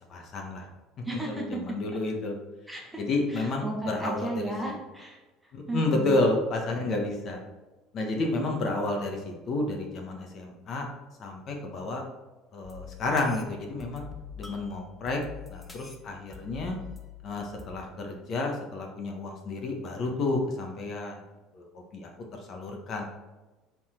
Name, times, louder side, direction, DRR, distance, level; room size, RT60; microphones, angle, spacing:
voice 1, 0.1-0.7 1.3-2.3 3.0-4.7 5.5-7.4 7.9-10.9 11.2-12.0 12.5-14.0 14.4-15.2 15.5-16.8 17.2-21.2 21.5-21.6 21.9-23.0, left 2 dB, 45° left, 2 dB, 1.3 m, -30 dB
voice 2, 1.0-1.6 2.7-3.0 3.3-6.2, right 2 dB, 5° right, -1 dB, 1.3 m, -35 dB
sound 1, 12.6-17.7, left 7 dB, 15° left, 0.9 m, -45 dB
7.4 x 3.9 x 4.4 m, 1.1 s
cardioid pair, 120°, 0 cm